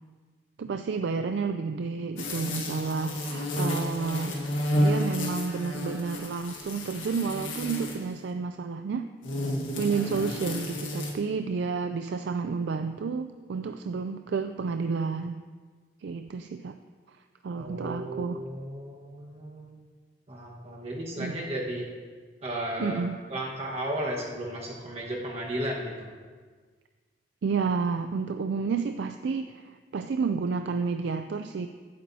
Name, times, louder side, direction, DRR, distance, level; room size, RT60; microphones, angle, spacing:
voice 1, 0.6-4.4 4.8-9.1 9.8-15.4 16.0-16.8 17.1-18.4 21.2-21.4 22.8-23.2 27.4-31.7, right 5 dB, 65° right, 8 dB, 0.3 m, -30 dB
sound 1, 2.2-8.1 9.2-11.1, left 1 dB, 85° left, 1.6 m, -31 dB
voice 2, 17.5-19.8 20.3-21.9 22.4-26.1, right 1 dB, 30° right, -2 dB, 1.4 m, -34 dB
15.5 x 8.7 x 2.8 m, 1.5 s
head